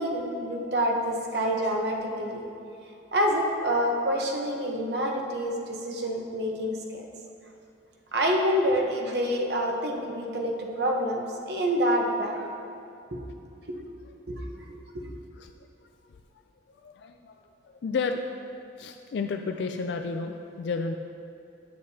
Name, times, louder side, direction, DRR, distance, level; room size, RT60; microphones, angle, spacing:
voice 1, 0.0-2.5 3.1-7.0 8.1-12.5 13.1-13.2 13.7-13.8 14.3-14.5 14.9-15.0, equal, 60° right, 1 dB, 0.9 m, -27 dB
voice 2, 16.7-17.3 17.6-18.2 18.8-21.0, left 4 dB, 65° left, 5 dB, 0.3 m, -32 dB
9.4 x 8.4 x 2.8 m, 2.7 s
head